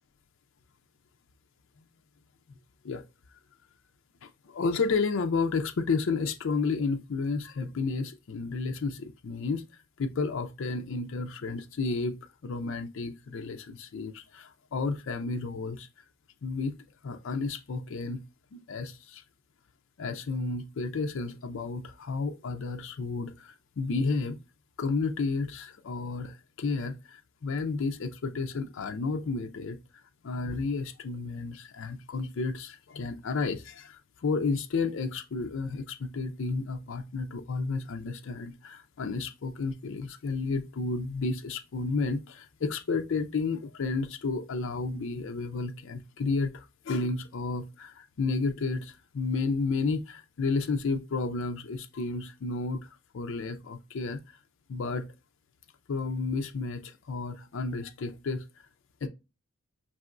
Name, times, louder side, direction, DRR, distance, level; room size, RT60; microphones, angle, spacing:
voice 1, 4.2-9.6 10.0-12.2 12.4-15.9 16.4-16.8 17.0-18.2 18.5-19.2 20.0-24.4 24.8-29.8 30.2-54.4 54.7-55.1 55.9-58.4 59.0-59.1, left 4 dB, 60° left, 0.4 m, -32 dB
5.4 x 2.9 x 2.4 m
head